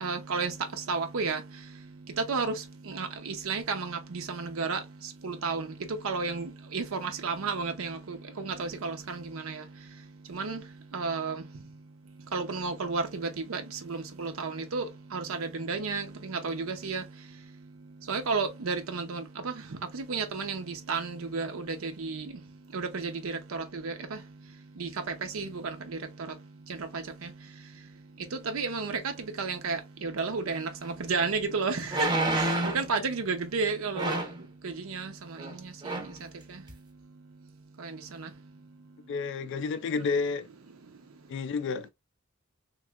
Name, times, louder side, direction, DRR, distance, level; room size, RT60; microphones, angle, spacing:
voice 1, 0.0-0.5 0.9-1.4 2.2-2.5 2.9-4.8 5.2-5.7 6.0-9.6 10.3-10.6 10.9-11.4 12.3-13.2 13.5-13.6 13.9-17.0 18.1-19.5 19.9-22.3 22.7-23.9 24.8-24.9 25.3-25.6 26.9-27.0 28.5-29.1 29.4-32.1 32.4-34.2 34.6-35.1 37.8-37.9 38.2-38.3, right 4 dB, 75° right, 0.6 m, -32 dB
sound 1, 30.8-30.9 31.9-32.9 33.9-34.4 35.4-35.5 35.8-36.2 36.7-36.8, right 2 dB, 20° right, 0.6 m, -29 dB
voice 2, 39.1-40.5 41.3-41.9, left 4 dB, 60° left, 0.3 m, -30 dB
3.1 x 2.9 x 2.3 m
head